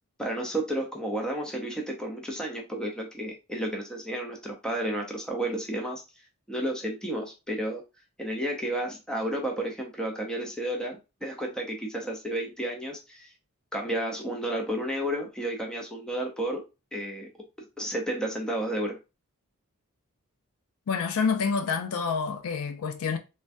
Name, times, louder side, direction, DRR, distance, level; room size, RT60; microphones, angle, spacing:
voice 1, 0.2-6.0 6.5-7.8 8.2-13.3 13.7-16.6 16.9-17.3 17.8-19.0, right 1 dB, 5° left, 0.5 m, -32 dB
voice 2, 20.9-23.2, left 5 dB, 80° left, 0.4 m, -28 dB
3.3 x 2.2 x 2.5 m
head